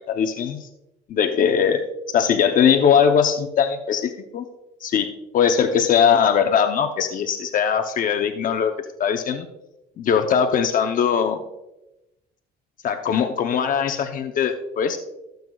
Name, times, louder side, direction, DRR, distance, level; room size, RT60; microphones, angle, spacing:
voice 1, 0.1-0.7 1.1-1.8 2.1-4.4 4.8-8.7 9.0-9.5 10.0-11.4 12.8-15.0, left 7 dB, 55° left, 6 dB, 0.8 m, -20 dB
17.5 x 7.9 x 2.4 m, 0.94 s
cardioid pair, 110°, 17 cm